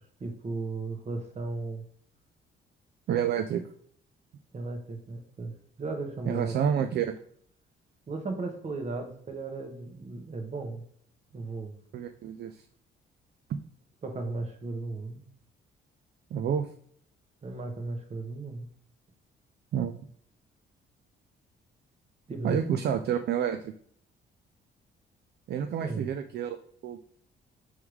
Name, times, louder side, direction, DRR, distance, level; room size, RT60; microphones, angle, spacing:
voice 1, 0.2-1.8 4.5-6.9 8.1-10.8 11.3-11.7 14.0-15.2 17.4-18.7 22.3-22.8 25.8-26.1, right 3 dB, 35° right, 4 dB, 1.1 m, -36 dB
voice 2, 3.1-3.6 6.2-7.2 11.9-12.6 16.3-16.7 19.7-19.9 22.4-23.7 25.5-26.6 26.8-27.0, right 8 dB, 55° right, 7 dB, 0.4 m, -29 dB
3.5 x 3.1 x 4.8 m, 0.62 s
cardioid pair, 90°, 20 cm